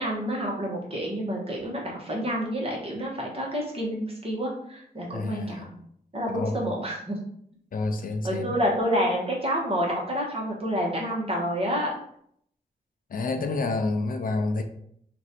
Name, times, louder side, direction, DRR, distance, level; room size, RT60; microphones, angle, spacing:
voice 1, 0.0-5.7 6.1-7.2 8.2-11.9, equal, 40° right, -3 dB, 1.3 m, -28 dB
voice 2, 5.1-5.8 6.3-6.6 7.7-8.6 13.1-14.6, left 3 dB, 60° left, 6 dB, 0.5 m, -29 dB
3.0 x 2.6 x 4.2 m, 0.68 s
wide cardioid pair, 95°, 16 cm